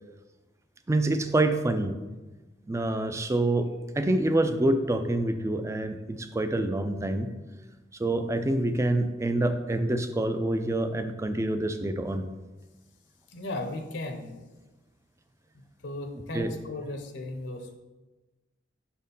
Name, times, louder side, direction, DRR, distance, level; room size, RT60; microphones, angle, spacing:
voice 1, 0.9-1.9 2.7-7.3 8.0-12.2 16.3-16.5, right 1 dB, 15° right, 9 dB, 0.4 m, -26 dB
voice 2, 13.3-14.5 15.8-17.8, left 2 dB, 65° left, 5 dB, 0.7 m, -36 dB
6.0 x 4.3 x 5.3 m, 1.2 s
head